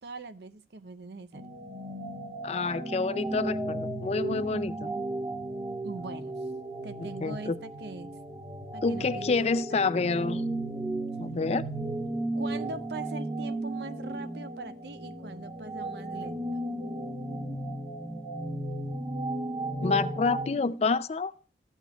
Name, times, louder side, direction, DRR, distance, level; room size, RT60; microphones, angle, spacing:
voice 1, 0.0-1.4 5.8-6.3 6.8-8.1 8.7-9.9 12.3-16.6, right 3 dB, 70° right, 0.6 m, -42 dB
sound 1, 1.3-20.5, right 1 dB, 25° right, 0.9 m, -35 dB
voice 2, 2.4-4.9 7.2-7.5 8.8-10.4 11.2-11.7 19.8-21.3, left 4 dB, 35° left, 0.4 m, -28 dB
14.0 x 8.2 x 2.3 m
head